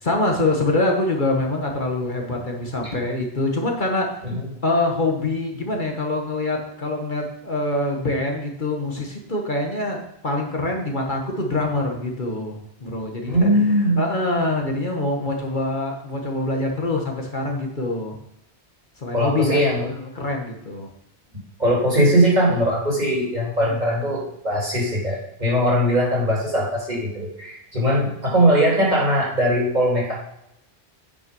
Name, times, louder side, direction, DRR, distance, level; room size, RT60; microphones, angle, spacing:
voice 1, 0.0-4.2 4.6-18.2 19.0-20.9 23.6-23.7, left 2 dB, 45° left, 1 dB, 1.5 m, -25 dB
voice 2, 13.2-14.0 19.1-19.8 21.6-30.1, equal, 40° right, -5 dB, 3.4 m, -20 dB
9.6 x 5.8 x 5.3 m, 0.80 s
omnidirectional pair, 1.1 m